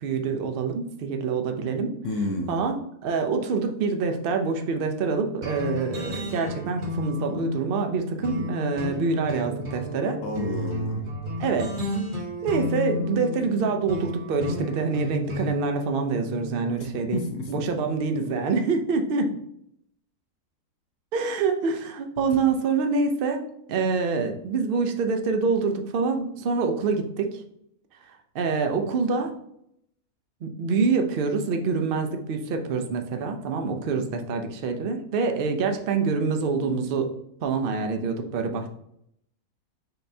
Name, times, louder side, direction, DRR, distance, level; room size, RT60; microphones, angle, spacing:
voice 1, 0.0-1.9 2.5-10.2 11.4-11.7 12.4-17.2 17.5-19.3 21.1-23.4 23.7-27.4 28.3-29.3 30.4-37.1 37.4-38.7, right 4 dB, 75° right, 5 dB, 0.5 m, -26 dB
voice 2, 2.0-2.6 10.2-11.0 17.1-17.7, left 2 dB, 65° left, 3 dB, 0.9 m, -30 dB
sound 1, 5.4-16.7, left 1 dB, 40° right, 0.9 m, -33 dB
5.8 x 3.3 x 2.6 m, 0.74 s
omnidirectional pair, 1.6 m